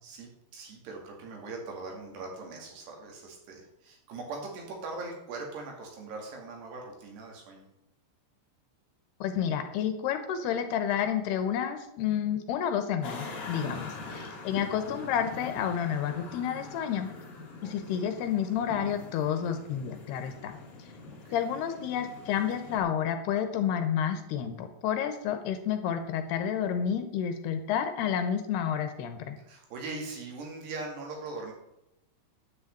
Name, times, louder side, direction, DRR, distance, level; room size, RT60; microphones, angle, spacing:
voice 1, 0.0-7.7 13.7-14.5 17.6-18.1 21.1-21.4 29.4-31.5, right 3 dB, 75° right, 1 dB, 4.5 m, -41 dB
voice 2, 9.2-17.1 17.6-20.6 21.3-29.4, left 8 dB, 75° left, 8 dB, 2.9 m, -30 dB
sound 1, 13.0-22.8, left 3 dB, 40° left, 2.8 m, -43 dB
9.9 x 6.3 x 8.8 m, 0.86 s
omnidirectional pair, 4.9 m